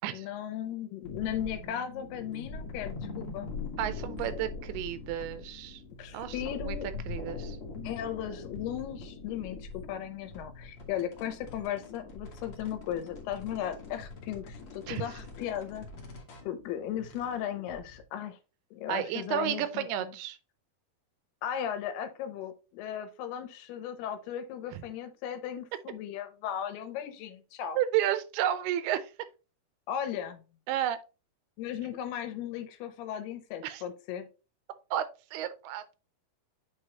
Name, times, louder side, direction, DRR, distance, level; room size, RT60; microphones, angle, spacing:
voice 1, 0.1-3.5 6.0-6.9 7.8-15.9 16.5-18.4 18.7-20.1 21.4-27.8 29.9-30.4 31.6-34.3, left 10 dB, 90° left, 2.9 m, -36 dB
sound 1, 1.0-18.0, left 3 dB, 50° left, 1.8 m, -42 dB
voice 2, 3.8-5.8 6.1-6.8 7.1-7.6 14.9-15.1 18.9-20.4 24.7-24.8 27.8-29.1 30.7-31.0 33.6-33.8 34.9-35.8, right 11 dB, 85° right, 2.7 m, -32 dB
8.1 x 4.5 x 2.9 m
omnidirectional pair, 4.4 m